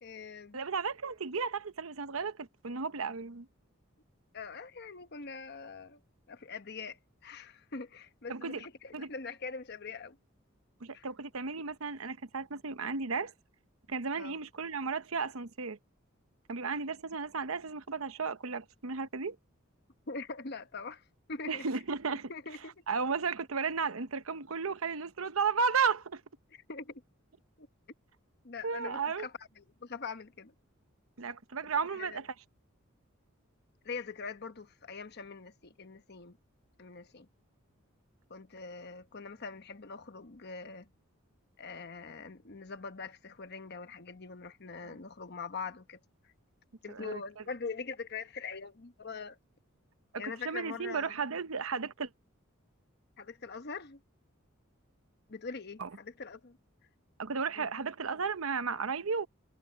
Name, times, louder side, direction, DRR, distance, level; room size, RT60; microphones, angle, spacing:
voice 1, 0.0-0.6 4.3-6.0 6.3-10.2 10.9-11.1 14.2-14.4 20.1-21.0 21.3-21.8 22.3-22.7 26.5-27.0 27.6-27.7 28.4-30.5 31.9-32.2 33.8-36.4 36.8-37.3 38.3-40.9 41.6-46.0 46.2-46.3 46.8-49.4 50.2-51.2 53.2-54.0 55.3-56.6 57.6-57.7, left 4 dB, 55° left, 1.1 m, -43 dB
voice 2, 0.5-3.5 8.3-8.7 8.9-9.1 10.8-13.3 13.9-15.8 16.5-19.4 21.5-22.3 22.9-26.2 28.6-29.3 31.2-32.3 44.8-44.9 46.9-47.2 50.1-52.1 55.8-55.9 57.2-59.3, right 5 dB, 90° right, 0.9 m, -34 dB
head